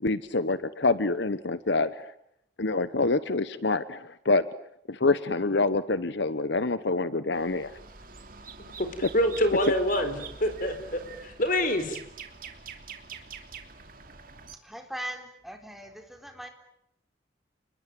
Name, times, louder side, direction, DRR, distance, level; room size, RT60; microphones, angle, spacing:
voice 1, 0.0-2.1 2.6-4.4 4.9-7.7, left 3 dB, 70° left, 14 dB, 1.0 m, -26 dB
sound 1, 7.3-14.6, right 5 dB, 45° right, 3.1 m, -45 dB
voice 2, 9.1-10.1 10.4-12.0, left 1 dB, 45° left, 9 dB, 4.4 m, -26 dB
voice 3, 14.6-16.5, equal, ahead, 4 dB, 4.0 m, -40 dB
29.5 x 21.5 x 9.2 m, 0.77 s
head